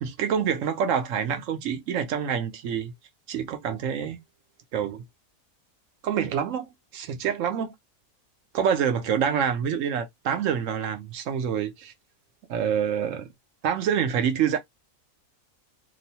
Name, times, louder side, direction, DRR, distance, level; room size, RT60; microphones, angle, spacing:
voice 1, 0.0-2.9 3.3-4.2 4.7-5.0 6.0-7.7 8.5-11.9 12.5-13.3 13.6-14.6, right 8 dB, 70° right, 1.0 m, -26 dB
3.0 x 2.2 x 2.7 m
omnidirectional pair, 1.5 m